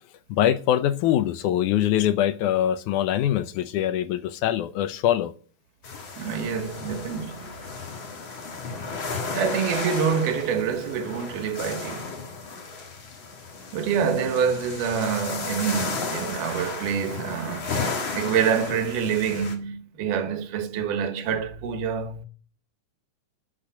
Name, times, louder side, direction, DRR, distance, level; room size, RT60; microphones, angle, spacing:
voice 1, 0.3-5.3, left 11 dB, 80° left, 2.2 m, -23 dB
sound 1, 5.8-19.5, left 4 dB, 45° left, 2.2 m, -34 dB
voice 2, 6.2-7.5 9.3-12.1 13.7-17.8 18.1-22.3, right 7 dB, 85° right, 2.7 m, -26 dB
10.5 x 6.7 x 7.6 m
omnidirectional pair, 3.6 m